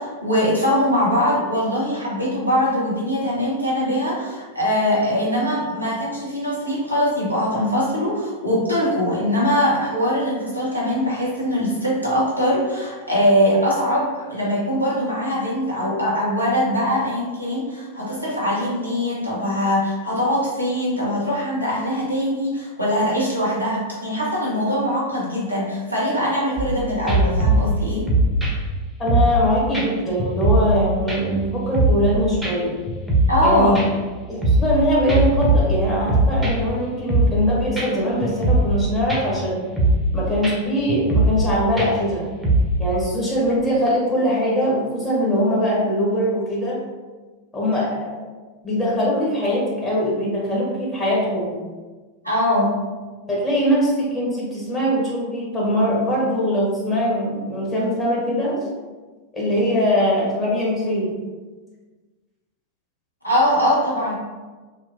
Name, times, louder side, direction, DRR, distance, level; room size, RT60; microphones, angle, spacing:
voice 1, 0.0-28.1 33.3-33.8 52.2-52.7 63.2-64.1, equal, 90° left, -6 dB, 0.8 m, -22 dB
sound 1, 26.6-26.8 27.1-29.4 29.7-29.9 30.2-30.8 31.1-32.1 32.4-32.5 32.9-33.5 33.7-34.8 35.1-36.8 37.1-37.5 37.8-37.9 38.2-38.8 39.1-39.4 39.8-40.1 40.4-40.5 40.9-41.5 41.8-42.8, right 1 dB, 5° right, 0.6 m, -20 dB
voice 2, 29.0-32.7 33.4-33.8 34.3-39.6 40.1-42.3 42.8-46.8 47.5-48.2 48.6-51.6 53.3-58.6 59.3-61.1, equal, 20° left, -6 dB, 1.0 m, -22 dB
2.8 x 2.2 x 2.6 m, 1.3 s
figure-of-eight pair, 90°, 0 cm